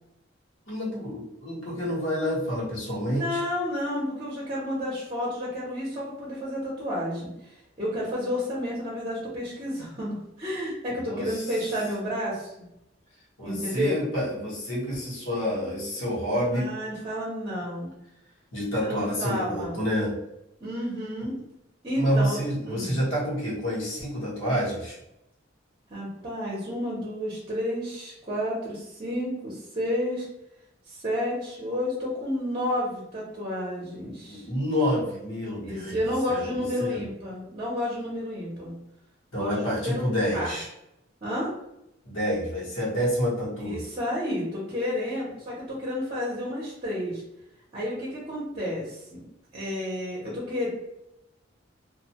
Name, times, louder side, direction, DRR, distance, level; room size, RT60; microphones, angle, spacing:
voice 1, 0.7-3.4 11.0-11.5 13.4-16.7 18.5-20.2 22.0-25.0 34.3-36.0 36.3-37.0 39.3-40.7 42.0-43.8, equal, 85° left, -6 dB, 1.2 m, -28 dB
voice 2, 3.0-12.5 13.4-13.9 16.5-17.9 18.8-19.8 20.6-21.3 21.8-22.4 22.6-22.9 25.9-30.3 30.9-34.5 35.6-38.7 39.3-39.5 39.8-40.0 40.3-40.5 41.2-41.5 43.7-47.2 47.7-49.3 49.5-50.7, left 1 dB, 30° right, -5 dB, 0.7 m, -31 dB
2.5 x 2.2 x 2.8 m, 0.85 s
head